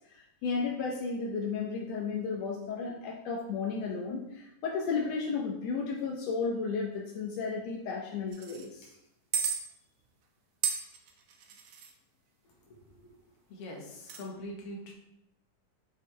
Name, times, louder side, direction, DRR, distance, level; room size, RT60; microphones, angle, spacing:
voice 1, 0.1-8.9, left 5 dB, 75° left, -1 dB, 1.5 m, -33 dB
sound 1, 8.3-8.7 9.3-9.6 10.6-11.9 13.9-14.2, right 7 dB, 75° right, 1.8 m, -33 dB
voice 2, 13.5-14.9, left 1 dB, 55° left, 0 dB, 1.8 m, -42 dB
7.6 x 5.6 x 3.2 m, 0.83 s
omnidirectional pair, 3.9 m